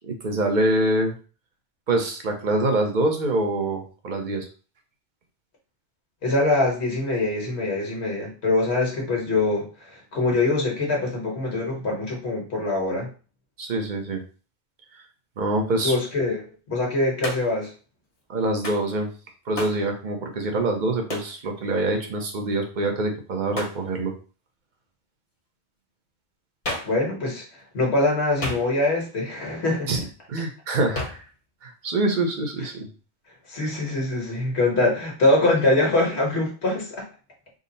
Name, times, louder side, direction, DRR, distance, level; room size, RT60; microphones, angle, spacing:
voice 1, 0.0-1.2 1.9-4.5 13.6-14.2 15.4-15.9 18.3-19.1 19.5-24.1 29.9-30.0 30.3-31.2 31.6-32.9, right 2 dB, 50° right, 4 dB, 0.8 m, -25 dB
voice 2, 6.2-13.1 15.8-17.7 26.8-29.9 33.5-37.0, left 2 dB, 70° left, -1 dB, 1.5 m, -23 dB
Hands, 17.2-17.6 18.6-18.9 19.6-19.8 21.1-21.4 23.5-23.8 26.6-27.0 28.4-29.0 30.9-31.3, left 1 dB, 35° left, 0.8 m, -32 dB
3.7 x 2.1 x 3.9 m, 0.36 s
omnidirectional pair, 1.1 m